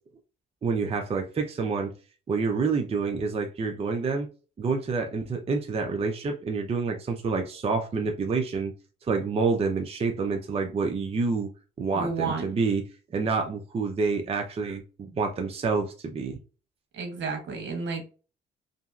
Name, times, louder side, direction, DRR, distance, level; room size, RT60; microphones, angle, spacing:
voice 1, 0.6-1.9 2.3-4.3 4.6-8.7 9.1-11.5 11.8-12.8 13.1-16.4, right 4 dB, 30° right, 3 dB, 0.5 m, -28 dB
voice 2, 11.9-12.4 16.9-18.0, right 4 dB, 70° right, 4 dB, 1.1 m, -31 dB
2.8 x 2.7 x 2.3 m, 0.34 s
cardioid pair, 90°, 20 cm